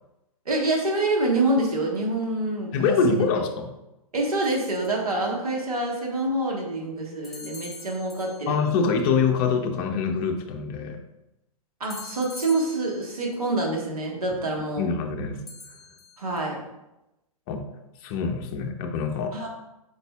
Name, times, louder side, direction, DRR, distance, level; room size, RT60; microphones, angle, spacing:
voice 1, 0.4-3.2 4.1-8.5 11.8-14.8 16.2-16.6 19.3-19.5, right 2 dB, 80° right, -1 dB, 1.3 m, -26 dB
voice 2, 2.7-3.7 8.5-11.0 14.8-15.4 17.5-17.6 18.0-19.4, left 5 dB, 40° left, 4 dB, 0.6 m, -25 dB
sound 1, 4.4-5.1 7.2-8.7 11.8-13.3 15.5-16.4, left 3 dB, ahead, 1.1 m, -44 dB
5.1 x 4.0 x 2.3 m, 0.94 s
figure-of-eight pair, 115°, 19 cm